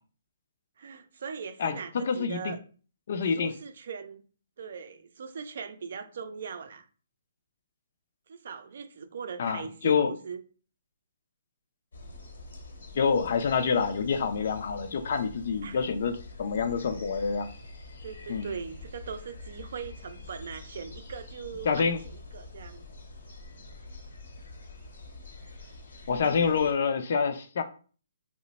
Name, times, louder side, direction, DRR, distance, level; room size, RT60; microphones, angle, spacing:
voice 1, 0.8-2.6 3.3-4.2 4.6-6.9 8.3-10.4 15.6-15.8 18.0-22.8 26.2-26.7, right 6 dB, 55° right, 0.4 m, -40 dB
voice 2, 1.6-2.5 3.1-3.5 9.4-10.1 12.9-17.5 18.3-18.5 21.6-22.0 26.1-27.6, left 6 dB, 50° left, 0.4 m, -27 dB
sound 1, 11.9-26.7, left 2 dB, 75° left, 1.0 m, -46 dB
3.0 x 2.1 x 4.0 m
hypercardioid pair, 165°, 0 cm